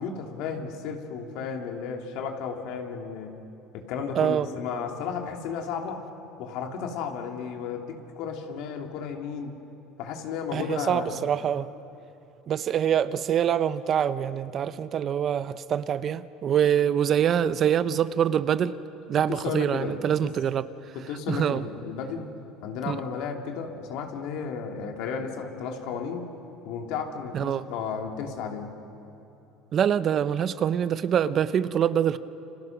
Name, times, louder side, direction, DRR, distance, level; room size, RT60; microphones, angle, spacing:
voice 1, 0.0-3.4 3.7-6.0 6.4-9.6 10.0-11.2 19.3-20.3 20.9-22.3 22.6-26.3 26.6-28.7, left 6 dB, 70° left, 3 dB, 3.1 m, -33 dB
voice 2, 4.1-4.5 10.5-11.7 12.5-18.8 19.1-20.7 21.3-21.6 22.8-23.0 27.3-27.6 29.7-32.2, right 9 dB, 45° right, 14 dB, 0.8 m, -25 dB
30.0 x 26.0 x 6.1 m, 3.0 s
supercardioid pair, 110°, 0 cm